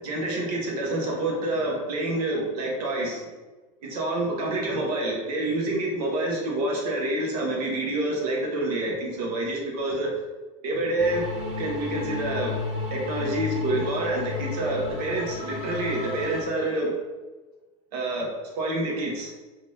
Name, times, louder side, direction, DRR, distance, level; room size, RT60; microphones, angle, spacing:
voice 1, 0.0-3.3 3.8-10.2 10.6-11.3 11.6-12.6 12.9-16.9 17.9-19.3, right 1 dB, 85° right, -2 dB, 0.8 m, -27 dB
voice melody, 11.0-16.4, left 3 dB, 10° right, 1.3 m, -32 dB
3.1 x 2.5 x 2.6 m, 1.2 s
supercardioid pair, 120°, 19 cm